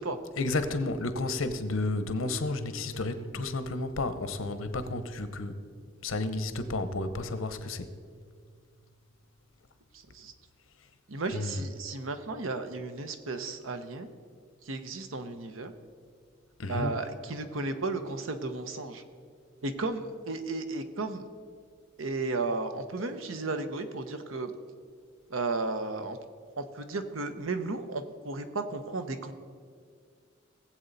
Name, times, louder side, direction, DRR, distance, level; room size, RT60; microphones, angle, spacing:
voice 1, 0.4-5.6 6.0-7.9 11.3-11.6 16.6-16.9, left 2 dB, 90° left, 10 dB, 0.9 m, -32 dB
voice 2, 9.9-10.3 11.1-14.1 14.6-15.7 16.7-19.0 19.6-21.3 22.0-24.5 25.3-26.2 26.6-29.3, right 3 dB, 90° right, 9 dB, 0.9 m, -34 dB
19.5 x 7.8 x 4.1 m, 2.1 s
head